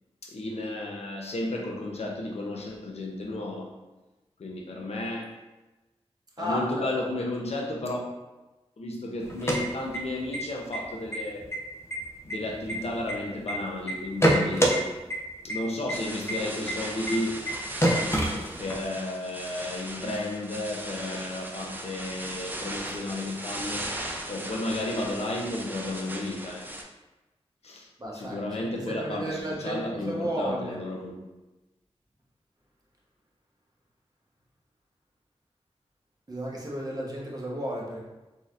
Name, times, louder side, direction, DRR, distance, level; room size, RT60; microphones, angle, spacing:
voice 1, 0.2-3.7 4.4-5.4 6.4-8.0 8.8-11.5 12.2-14.9 15.4-17.5 18.0-23.9 24.3-26.7 27.6-27.9 28.1-31.1, left 2 dB, 70° left, -1 dB, 0.7 m, -33 dB
voice 2, 6.4-6.9 28.0-30.8 36.3-38.0, right 1 dB, 35° right, -3 dB, 1.0 m, -33 dB
sound 1, 9.2-10.4 10.7-10.8 11.1-11.6 11.9-13.5 13.9-14.8 15.1-15.2 15.5-15.6 15.9-16.0 16.3-16.4 16.7-16.8 17.1-17.2 17.5-17.6 17.8-18.8, right 1 dB, 25° left, 0.7 m, -25 dB
sound 2, 15.9-26.8, right 1 dB, 15° right, 0.5 m, -38 dB
4.0 x 2.8 x 2.5 m, 1.1 s
cardioid pair, 50°, 11 cm